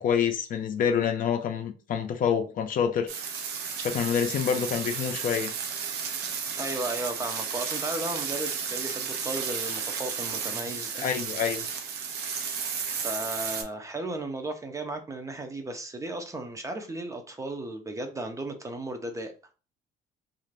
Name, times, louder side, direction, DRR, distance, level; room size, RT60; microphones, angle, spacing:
voice 1, 0.0-3.1 3.8-5.5 10.9-11.6, left 7 dB, 55° left, 0.5 m, -27 dB
sound 1, 3.1-13.6, right 6 dB, 75° right, 0.6 m, -33 dB
voice 2, 6.6-11.0 12.9-19.3, right 2 dB, 20° right, 0.5 m, -35 dB
2.5 x 2.5 x 3.2 m
cardioid pair, 110°, 17 cm